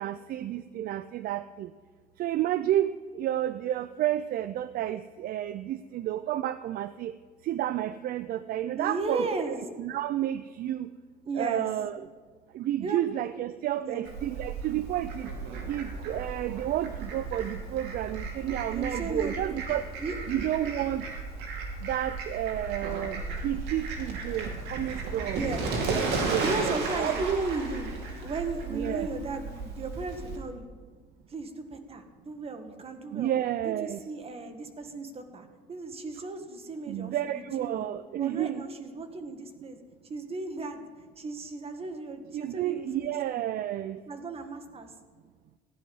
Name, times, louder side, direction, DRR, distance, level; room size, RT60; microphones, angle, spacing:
voice 1, 0.0-1.7 2.2-7.1 7.4-10.9 11.4-12.1 12.5-15.3 15.7-19.8 20.3-21.1 21.8-25.4 25.9-27.4 28.7-29.1 33.1-34.0 36.9-38.7 42.3-44.0, right 12 dB, 60° right, 14 dB, 0.4 m, -31 dB
voice 2, 8.7-9.6 11.2-11.7 12.8-13.0 13.8-14.1 18.7-19.3 20.0-20.2 25.4-25.6 26.4-27.9 28.2-30.6 31.3-33.3 33.6-37.9 38.2-39.8 40.1-40.8 41.2-43.4 44.1-44.9, right 3 dB, 35° right, 7 dB, 1.6 m, -35 dB
Fowl, 14.0-30.4, right 3 dB, 85° right, 2.5 m, -35 dB
15.5 x 10.5 x 5.4 m, 1.5 s
cardioid pair, 110°, 17 cm